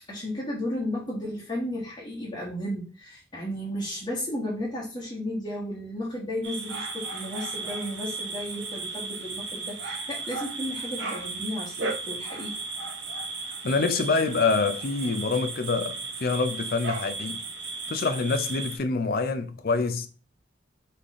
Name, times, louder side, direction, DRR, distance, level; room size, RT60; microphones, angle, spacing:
voice 1, 0.1-12.6, left 1 dB, 25° left, 1.4 m, -33 dB
sound 1, 6.4-18.8, right 3 dB, 70° right, 0.9 m, -35 dB
voice 2, 13.6-17.4 17.9-20.1, left 4 dB, 55° left, 0.6 m, -26 dB
4.2 x 3.4 x 3.6 m
head